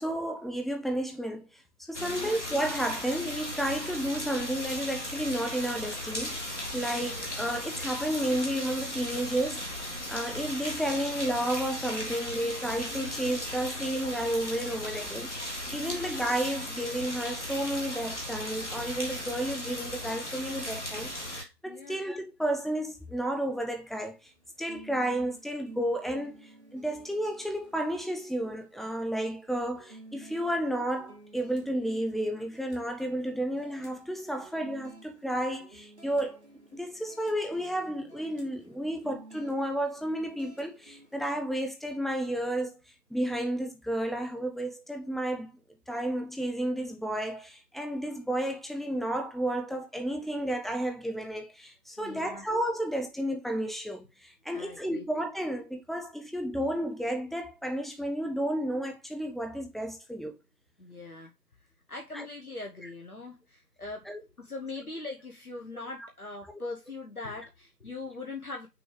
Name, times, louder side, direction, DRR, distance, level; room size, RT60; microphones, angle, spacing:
voice 1, 0.0-1.5 1.9-9.7 10.1-24.2 24.6-36.4 36.7-42.8 43.1-45.5 45.9-60.4 62.1-62.2 64.1-64.2, right 1 dB, ahead, 0.5 m, -32 dB
sound 1, 1.9-21.4, left 1 dB, 45° left, 1.5 m, -37 dB
voice 2, 2.0-2.4 6.7-7.1 12.8-13.2 15.7-16.0 21.6-22.0 52.0-52.6 54.5-55.0 60.8-61.3 61.9-64.1 64.4-68.7, left 3 dB, 60° left, 1.1 m, -41 dB
sound 2, 23.2-41.3, right 2 dB, 45° right, 1.6 m, -54 dB
6.1 x 3.2 x 5.0 m
figure-of-eight pair, 175°, 49 cm